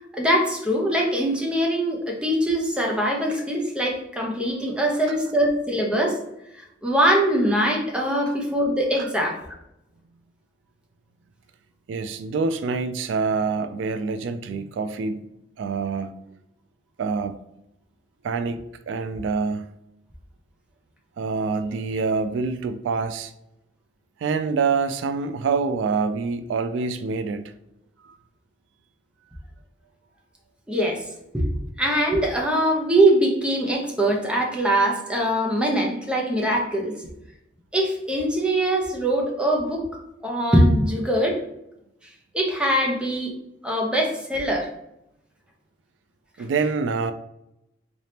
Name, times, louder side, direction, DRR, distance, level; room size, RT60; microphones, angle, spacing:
voice 1, 0.1-6.2 6.6-9.4 30.7-31.0 31.3-31.5 31.8-37.0 37.7-39.8 40.2-41.4 42.3-43.3 43.6-44.7, right 1 dB, 5° right, -1 dB, 0.8 m, -22 dB
voice 2, 11.9-15.2 15.6-16.1 17.0-17.4 18.2-19.7 21.2-23.3 24.2-27.5 46.4-47.1, right 4 dB, 85° right, 10 dB, 0.3 m, -26 dB
3.9 x 3.4 x 2.8 m, 0.83 s
head